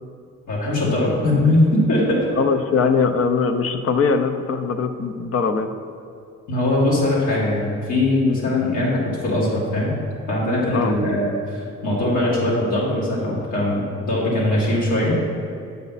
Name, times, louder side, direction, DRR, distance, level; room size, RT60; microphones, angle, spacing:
voice 1, 0.5-2.3 6.5-9.9 10.3-15.2, left 1 dB, 75° left, -7 dB, 2.1 m, -21 dB
voice 2, 2.4-5.7 10.7-10.9, left 5 dB, 50° left, 8 dB, 0.7 m, -21 dB
8.2 x 7.3 x 4.1 m, 2.5 s
cardioid pair, 90°, 30 cm